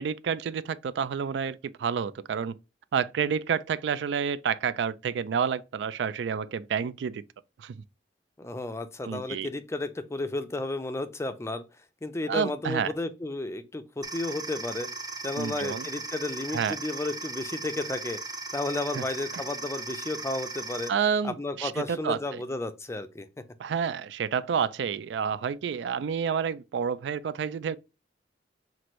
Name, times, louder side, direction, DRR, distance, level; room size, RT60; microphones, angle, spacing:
voice 1, 0.0-2.6 2.9-7.2 7.6-7.8 9.0-9.5 12.3-12.9 15.4-15.9 16.5-16.7 18.9-19.0 20.9-22.4 23.6-27.8, right 7 dB, 80° right, 0.3 m, -29 dB
voice 2, 8.4-11.6 12.0-14.9 15.2-20.9 21.2-23.3, left 2 dB, 15° left, 0.4 m, -33 dB
sound 1, 14.0-20.9, right 3 dB, 20° right, 0.7 m, -37 dB
5.9 x 2.6 x 3.0 m
head